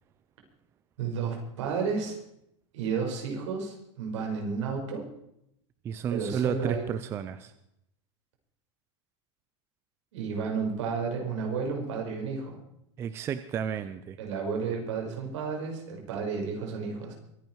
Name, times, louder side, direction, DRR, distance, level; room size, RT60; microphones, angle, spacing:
voice 1, 1.0-2.2 2.7-5.1 6.1-6.9 10.1-12.6 14.2-17.1, right 5 dB, 65° right, 1 dB, 5.6 m, -32 dB
voice 2, 5.8-7.5 13.0-14.2, right 8 dB, 15° right, 11 dB, 0.5 m, -32 dB
23.5 x 10.5 x 4.7 m, 0.77 s
supercardioid pair, 170°, 16 cm